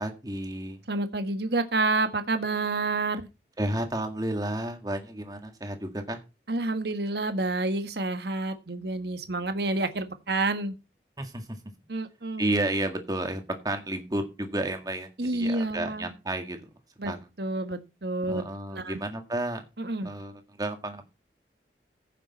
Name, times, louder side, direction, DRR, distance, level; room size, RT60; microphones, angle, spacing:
voice 1, 0.0-0.8 3.6-6.2 11.2-11.5 12.4-16.7 17.1-17.2 18.3-19.6 20.0-21.1, right 1 dB, 20° right, 1.8 m, -31 dB
voice 2, 0.9-3.2 6.5-10.7 11.9-12.7 15.2-16.1 17.0-17.1 17.4-18.4 18.7-19.0 19.8-20.1, right 2 dB, 70° right, 1.4 m, -29 dB
15.5 x 6.9 x 4.2 m
head